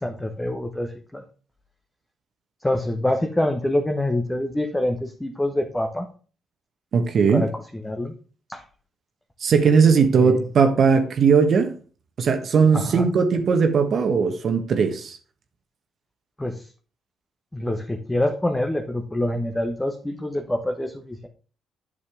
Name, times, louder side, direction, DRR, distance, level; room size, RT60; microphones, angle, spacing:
voice 1, 0.0-1.2 2.6-6.1 7.3-8.1 8.5-8.6 10.1-10.4 12.7-13.1 16.4-16.7 17.5-21.3, left 1 dB, 10° left, 3 dB, 1.1 m, -26 dB
voice 2, 6.9-7.4 9.4-11.7 12.2-15.2, right 5 dB, 60° right, 6 dB, 1.2 m, -18 dB
8.6 x 6.8 x 3.5 m, 0.39 s
supercardioid pair, 70°, 0 cm